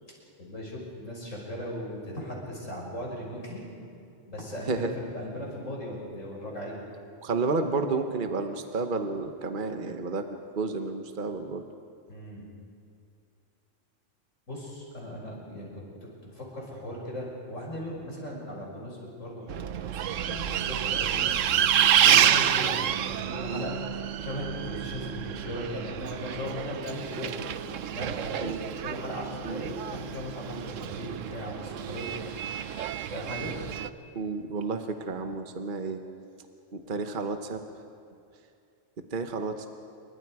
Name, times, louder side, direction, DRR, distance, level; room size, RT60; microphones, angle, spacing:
voice 1, 0.4-3.6 4.3-6.8 12.1-12.5 14.5-15.8 16.3-21.3 21.9-23.8 24.2-27.5 27.9-28.5 28.8-32.3 33.1-33.5, left 1 dB, 90° left, -2 dB, 6.4 m, -38 dB
voice 2, 7.2-10.3 10.5-11.6 22.0-22.3 23.5-23.7 28.4-28.6 29.4-29.6 34.1-36.0 36.7-37.6 39.1-39.7, right 4 dB, 45° right, 6 dB, 1.2 m, -31 dB
Bus, 19.5-33.9, right 9 dB, 85° right, 1.1 m, -28 dB
27.5 x 24.0 x 4.8 m, 2.5 s
omnidirectional pair, 1.3 m